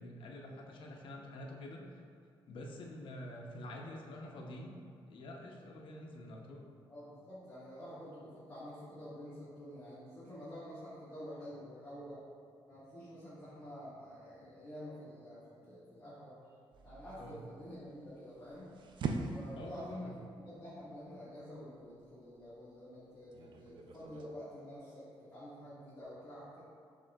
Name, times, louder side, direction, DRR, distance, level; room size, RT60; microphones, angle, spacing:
voice 1, 0.0-2.0 2.5-4.7 5.1-6.6 17.2-17.4 19.6-20.2, left 1 dB, 70° left, 0 dB, 0.6 m, -47 dB
voice 2, 6.9-12.2 12.7-16.5 16.8-18.7 19.3-20.1 20.4-26.6, equal, 25° left, -13 dB, 1.3 m, -49 dB
sound 1, 16.7-24.3, right 4 dB, 60° right, 0.4 m, -44 dB
6.0 x 3.6 x 2.3 m, 2.3 s
cardioid pair, 115°, 9 cm